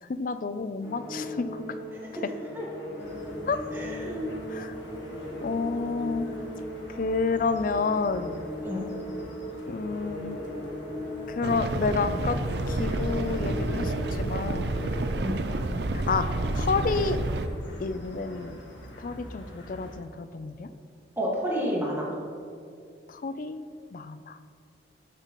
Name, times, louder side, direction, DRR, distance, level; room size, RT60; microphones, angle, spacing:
voice 1, 0.0-1.8 3.4-3.6 4.5-4.7 5.4-6.3 6.9-8.4 9.7-10.4 11.3-12.4 12.7-14.7 15.6-16.3 16.5-17.2 17.8-18.6 19.0-20.7 23.1-23.6 23.9-24.4, left 4 dB, 45° left, 12 dB, 0.4 m, -30 dB
sound 1, 0.8-15.0, left 1 dB, 20° left, 2.3 m, -38 dB
sound 2, 3.0-20.0, equal, 80° left, 1.6 m, -45 dB
voice 2, 3.7-4.3 8.6-8.9 15.2-15.4 21.2-22.1, equal, 15° right, -5 dB, 1.8 m, -30 dB
sound 3, 11.4-17.5, right 2 dB, 60° right, 0.5 m, -29 dB
12.5 x 6.7 x 3.1 m, 2.4 s
head